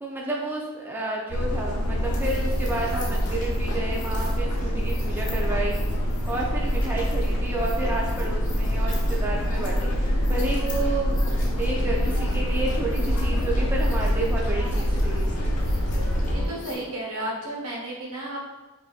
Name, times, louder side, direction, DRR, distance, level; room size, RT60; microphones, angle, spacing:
voice 1, 0.0-15.3, right 2 dB, 10° right, -3 dB, 0.4 m, -31 dB
sound 1, 1.3-16.5, equal, 85° left, 0.6 m, -25 dB
sound 2, 1.5-16.9, left 1 dB, 10° left, 1.1 m, -42 dB
sound 3, 2.0-16.8, left 2 dB, 35° left, 0.7 m, -44 dB
voice 2, 16.3-18.4, right 1 dB, 75° right, -3 dB, 1.0 m, -33 dB
5.2 x 2.6 x 2.4 m, 1.2 s
head